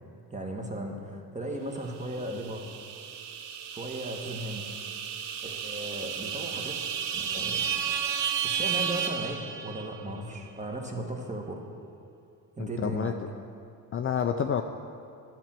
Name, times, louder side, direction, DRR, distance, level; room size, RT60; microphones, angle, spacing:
voice 1, 0.3-2.7 3.7-4.7 5.4-6.8 7.1-7.7 8.4-11.6 12.6-13.2, right 1 dB, 15° right, 2 dB, 1.3 m, -36 dB
sound 1, 2.0-10.0, right 8 dB, 75° right, 0.8 m, -33 dB
voice 2, 12.6-13.1 13.9-14.6, left 8 dB, 35° left, 5 dB, 0.4 m, -28 dB
11.0 x 4.5 x 7.5 m, 2.5 s
cardioid pair, 90°, 41 cm